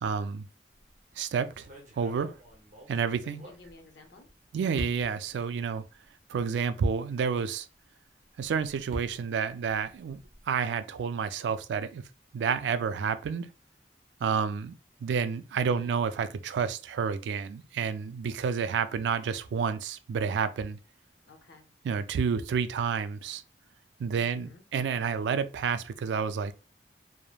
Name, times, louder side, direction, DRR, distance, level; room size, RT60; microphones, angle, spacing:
voice 1, 0.0-0.5 1.2-1.7 2.0-2.3 2.9-3.4 4.5-5.8 6.3-7.7 8.4-10.2 10.5-12.0 12.3-13.5 14.2-14.7 15.0-20.8 21.8-23.4 24.0-26.5, right 6 dB, 80° right, 0.3 m, -30 dB
sound 1, 0.7-1.0 1.5-4.3 4.7-5.3 6.0-6.1 6.5-6.6 8.2-10.5, right 1 dB, 45° right, 0.7 m, -44 dB
voice 2, 3.4-4.3 15.6-16.2 21.2-21.7 24.1-24.7, left 3 dB, 80° left, 0.6 m, -54 dB
3.1 x 2.0 x 2.3 m
head